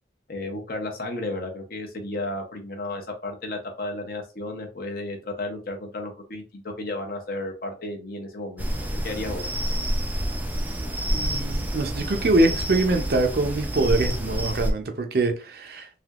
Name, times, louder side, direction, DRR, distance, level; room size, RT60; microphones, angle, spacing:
voice 1, 0.3-9.5, left 2 dB, 50° left, 0.7 m, -33 dB
sound 1, 8.6-14.7, equal, 10° right, 0.4 m, -28 dB
voice 2, 11.1-15.9, right 2 dB, 55° right, 0.5 m, -24 dB
3.4 x 2.7 x 2.4 m
head